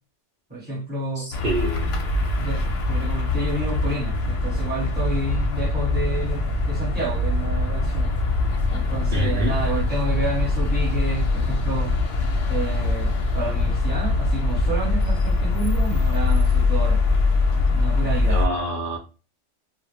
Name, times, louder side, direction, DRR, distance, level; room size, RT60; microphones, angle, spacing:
voice 1, 0.5-1.3 2.4-8.1 8.7-11.9 12.5-17.0 17.5-18.4, right 2 dB, 10° right, 0.9 m, -30 dB
voice 2, 1.1-1.9 9.1-9.6 18.2-19.0, right 1 dB, 55° right, 0.6 m, -27 dB
sound 1, 1.3-18.5, left 3 dB, 65° left, 0.8 m, -22 dB
2.2 x 2.0 x 3.0 m
omnidirectional pair, 1.2 m